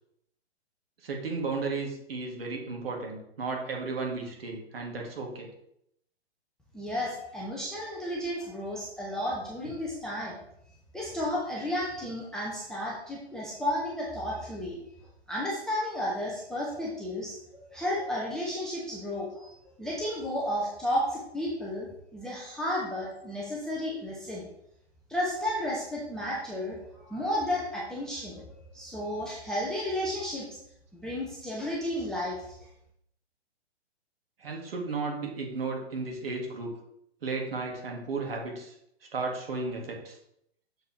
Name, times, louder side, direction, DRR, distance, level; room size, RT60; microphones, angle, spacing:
voice 1, 1.0-5.5 34.4-36.7 37.2-38.7 39.1-40.2, right 3 dB, 60° right, 0 dB, 2.1 m, -34 dB
voice 2, 6.7-10.4 10.9-14.8 15.3-19.5 19.8-24.5 25.1-30.5 30.9-32.6, left 1 dB, ahead, -6 dB, 0.4 m, -33 dB
6.5 x 4.6 x 4.6 m, 0.75 s
figure-of-eight pair, 125°, 33 cm